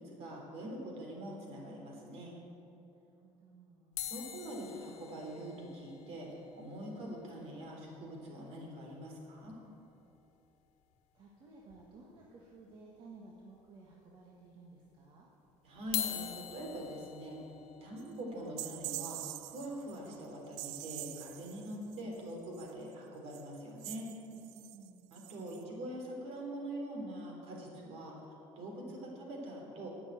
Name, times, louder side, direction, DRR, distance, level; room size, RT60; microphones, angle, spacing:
voice 1, 0.0-2.3 4.1-6.3 6.5-9.6 15.6-17.4 17.8-19.2 19.5-24.1 25.1-28.2 28.6-29.9, right 1 dB, 60° right, 0 dB, 3.6 m, -43 dB
voice 2, 3.0-4.1 11.1-15.3 18.1-18.4 20.0-20.2 21.7-22.1 24.3-25.6 28.9-29.1, right 3 dB, 40° right, -3 dB, 1.6 m, -56 dB
sound 1, 4.0-8.3 8.6-8.7 8.9-9.0 9.4-9.6 10.9-11.0 11.7-12.2 12.7-12.8 13.7-13.8 15.8-21.9 22.4-22.7, left 11 dB, 70° left, 1.4 m, -45 dB
sound 2, 18.0-18.1 18.6-20.2 20.5-22.7 23.3-23.5 23.8-25.6, right 17 dB, 80° right, 0.4 m, -45 dB
11.0 x 8.3 x 9.0 m, 2.9 s
cardioid pair, 145°, 12 cm